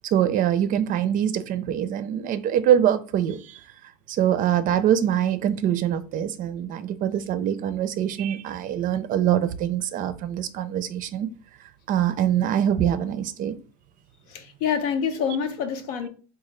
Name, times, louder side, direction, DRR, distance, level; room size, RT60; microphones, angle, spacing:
voice 1, 0.0-3.6 4.1-11.3 11.9-13.6, right 10 dB, 45° right, 0.4 m, -24 dB
voice 2, 14.3-16.1, left 7 dB, 85° left, 0.7 m, -26 dB
3.7 x 2.3 x 3.1 m
supercardioid pair, 115°, 19 cm